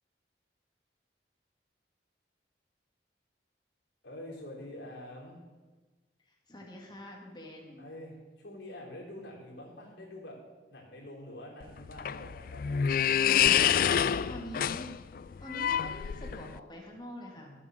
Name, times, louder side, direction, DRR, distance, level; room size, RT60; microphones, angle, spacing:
voice 1, 4.0-5.4 7.8-10.4 10.7-12.8 17.4-17.6, left 1 dB, 85° left, -3 dB, 3.7 m, -46 dB
voice 2, 6.5-7.9 13.8-14.9 15.4-17.6, equal, 25° left, -1 dB, 2.0 m, -45 dB
sound 1, 11.6-16.6, left 9 dB, 50° left, 0.3 m, -27 dB
13.5 x 7.1 x 6.4 m, 1.3 s
head